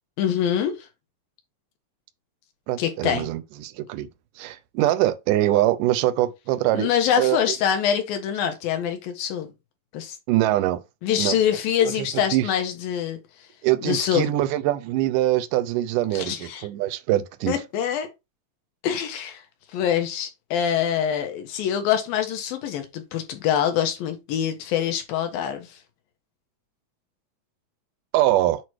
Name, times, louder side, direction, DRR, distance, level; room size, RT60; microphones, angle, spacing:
voice 1, 0.2-0.9 2.8-3.3 6.7-9.5 9.9-10.2 11.0-13.5 13.8-14.3 16.1-16.7 17.5-18.1 18.8-19.4 19.7-25.8, left 9 dB, 85° left, 3.1 m, -25 dB
voice 2, 2.7-4.1 4.4-6.9 7.2-7.4 10.3-10.8 11.2-11.4 11.8-12.5 13.6-17.5 28.1-28.6, right 14 dB, 75° right, 2.1 m, -23 dB
8.1 x 3.0 x 4.7 m
omnidirectional pair, 4.0 m